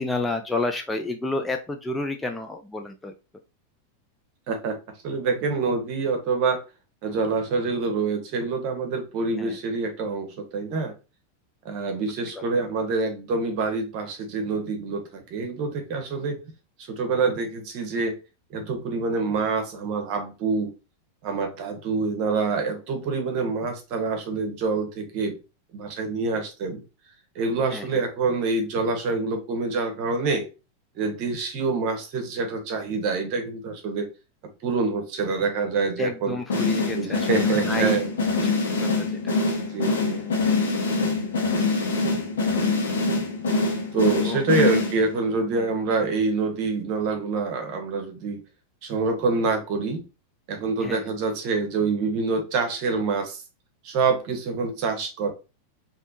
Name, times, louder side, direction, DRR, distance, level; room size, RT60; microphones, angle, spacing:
voice 1, 0.0-3.1 9.4-9.6 12.3-12.4 27.7-28.0 36.0-38.0 38.4-39.4 40.0-40.4 44.2-44.8 45.5-45.7 50.8-51.1, left 2 dB, 10° left, 0.4 m, -31 dB
voice 2, 4.5-4.8 5.0-6.6 7.0-10.9 11.6-16.4 16.9-18.1 18.5-20.7 21.2-25.4 25.7-26.8 27.3-30.5 31.0-34.1 34.6-36.4 36.9-38.1 39.7-40.2 43.9-48.4 48.8-50.0 50.5-53.4 53.8-55.3, right 4 dB, 45° right, 1.0 m, -26 dB
sound 1, 36.5-45.3, left 3 dB, 65° left, 0.9 m, -24 dB
3.3 x 2.6 x 2.6 m
figure-of-eight pair, 90°, 0 cm